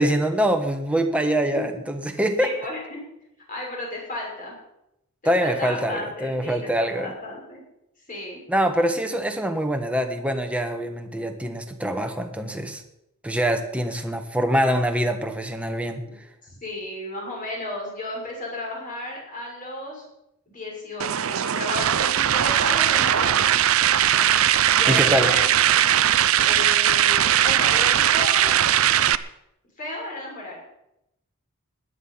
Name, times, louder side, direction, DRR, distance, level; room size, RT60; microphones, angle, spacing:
voice 1, 0.0-2.5 5.2-7.1 8.5-12.8 13.2-16.0 24.5-25.3, right 1 dB, 5° right, 5 dB, 1.3 m, -24 dB
voice 2, 1.5-1.8 2.2-3.0 3.5-4.6 5.2-7.6 8.1-8.4 16.0-16.2 16.4-20.1 20.5-23.6 24.7-25.5 26.4-28.5 29.8-30.6, left 1 dB, 40° left, -2 dB, 6.5 m, -34 dB
sound 1, 21.0-29.1, right 10 dB, 75° right, 0.6 m, -19 dB
16.5 x 11.0 x 5.8 m, 0.85 s
head